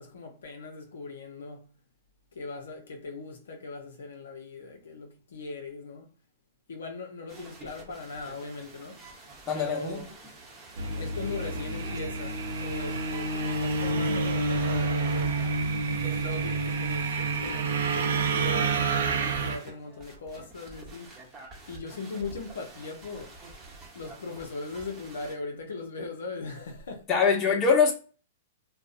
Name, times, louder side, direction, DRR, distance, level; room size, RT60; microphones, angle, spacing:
voice 1, 0.0-1.7 2.3-6.1 6.7-9.0 9.5-10.1 11.0-15.4 16.0-21.1 21.7-23.3 23.9-27.1, left 3 dB, 75° left, 0.5 m, -39 dB
sound 1, 7.3-25.4, right 3 dB, 20° right, 0.8 m, -48 dB
voice 2, 9.5-10.0 27.1-27.9, left 5 dB, 25° left, 0.7 m, -23 dB
sound 2, 10.8-19.6, right 3 dB, 75° right, 0.5 m, -28 dB
2.5 x 2.0 x 2.4 m
hypercardioid pair, 120°, 0 cm